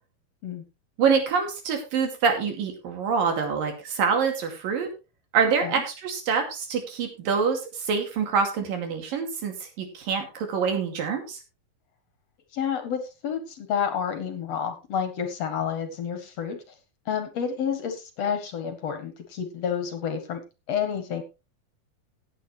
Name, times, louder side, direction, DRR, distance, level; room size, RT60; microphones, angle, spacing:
voice 1, 1.0-4.9 5.3-11.4, right 6 dB, 85° right, 4 dB, 4.2 m, -26 dB
voice 2, 12.5-16.6 17.1-20.4 20.7-21.2, left 7 dB, 60° left, 8 dB, 2.2 m, -29 dB
16.5 x 8.7 x 3.2 m, 0.29 s
omnidirectional pair, 3.9 m